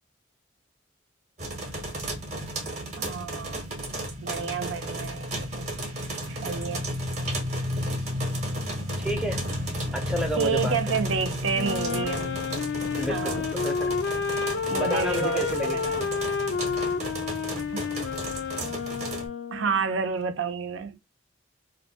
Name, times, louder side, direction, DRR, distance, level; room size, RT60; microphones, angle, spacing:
sound 1, 1.4-19.3, equal, 35° right, 0.7 m, -33 dB
voice 1, 3.0-3.6 4.2-5.7 6.3-6.9 10.4-12.4 13.0-13.4 14.6-16.0 17.7-18.1 19.5-21.0, right 6 dB, 85° right, 0.5 m, -30 dB
voice 2, 9.0-9.4 9.9-10.7 13.0-13.9 14.8-15.8, equal, 5° right, 0.5 m, -30 dB
Wind instrument woodwind instrument, 11.5-19.8, left 6 dB, 65° left, 0.4 m, -30 dB
2.4 x 2.1 x 2.6 m
head